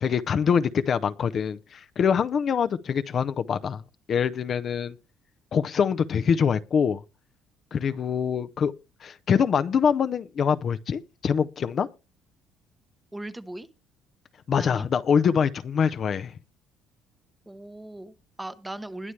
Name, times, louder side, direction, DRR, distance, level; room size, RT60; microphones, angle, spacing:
voice 1, 0.0-3.8 4.1-4.9 5.5-7.0 7.7-8.7 9.0-11.9 14.5-16.3, left 7 dB, 40° left, 0.6 m, -24 dB
voice 2, 13.1-13.7 14.6-14.9 17.5-19.1, right 1 dB, 10° right, 0.9 m, -38 dB
20.5 x 7.2 x 3.3 m
cardioid pair, 135°, 0 cm